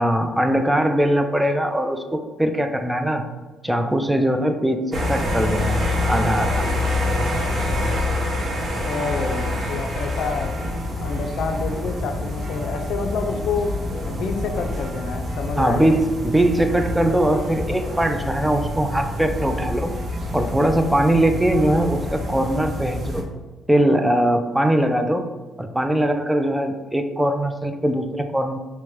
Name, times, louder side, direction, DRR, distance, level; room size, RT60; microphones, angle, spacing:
voice 1, 0.0-3.2 3.6-6.7 15.6-19.9 20.3-23.2 23.7-25.2 25.6-28.6, right 1 dB, 5° right, 6 dB, 0.3 m, -21 dB
sound 1, 4.9-23.2, left 1 dB, 45° right, 0.7 m, -26 dB
voice 2, 8.9-10.6 11.0-13.8 14.0-16.0, left 4 dB, 75° left, 6 dB, 0.4 m, -28 dB
4.4 x 2.1 x 3.1 m, 1.3 s
cardioid pair, 90°, 0 cm